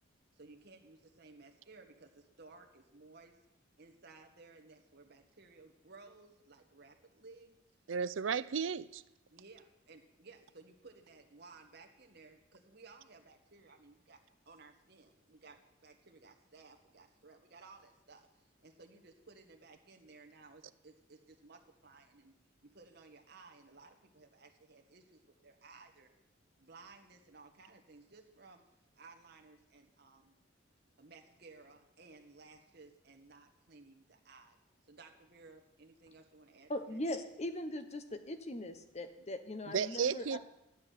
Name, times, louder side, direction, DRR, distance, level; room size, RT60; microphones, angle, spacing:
voice 1, 0.3-3.4 3.8-7.6 9.3-14.2 14.4-22.3 22.6-26.1 26.6-28.6 29.0-30.3 31.0-34.6 34.8-37.0, right 3 dB, 55° right, 1.5 m, -58 dB
voice 2, 7.9-9.0 39.7-40.4, right 6 dB, 85° right, 0.5 m, -34 dB
voice 3, 36.7-40.4, left 1 dB, 35° left, 1.0 m, -40 dB
12.5 x 6.5 x 9.4 m
head